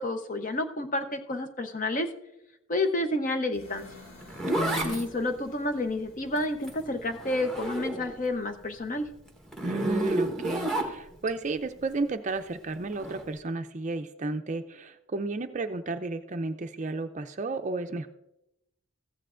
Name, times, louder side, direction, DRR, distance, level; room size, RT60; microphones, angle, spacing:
voice 1, 0.0-2.1 2.7-3.9 4.8-9.1, left 2 dB, 35° left, 6 dB, 0.7 m, -30 dB
sound 1, 3.5-7.4, left 2 dB, 80° left, 2.9 m, -53 dB
Zipper (clothing), 3.8-8.3 8.6-11.3 12.9-13.2, right 1 dB, 5° left, 1.1 m, -32 dB
voice 2, 4.5-5.0 9.6-18.1, right 3 dB, 35° right, 8 dB, 0.4 m, -32 dB
14.5 x 9.1 x 2.5 m, 0.85 s
head